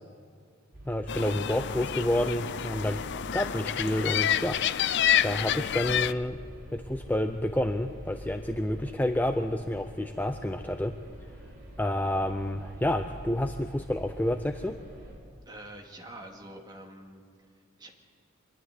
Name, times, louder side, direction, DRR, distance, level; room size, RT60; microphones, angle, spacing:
sound 1, 0.7-15.1, right 1 dB, 45° right, 5.5 m, -45 dB
voice 1, 0.9-3.0 3.3-6.4 6.7-10.9 11.8-14.8, left 1 dB, 10° left, 7 dB, 0.5 m, -29 dB
sound 2, 1.1-6.1, left 10 dB, 55° left, 0.5 m, -28 dB
voice 2, 15.5-17.2 17.8-17.9, right 1 dB, 20° right, 1 dB, 2.2 m, -45 dB
24.5 x 11.5 x 9.7 m, 2.2 s
head